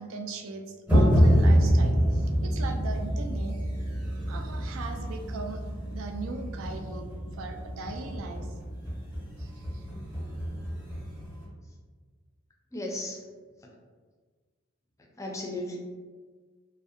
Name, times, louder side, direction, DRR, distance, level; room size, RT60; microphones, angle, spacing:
voice 1, 0.0-3.6 4.3-7.1 7.4-8.5 9.4-9.8, right 3 dB, 70° right, 5 dB, 0.3 m, -39 dB
sound 1, 0.9-11.5, equal, 10° right, 0.7 m, -27 dB
voice 2, 12.7-13.2 15.2-15.8, left 1 dB, 15° left, -1 dB, 0.4 m, -36 dB
2.5 x 2.1 x 2.5 m, 1.5 s
head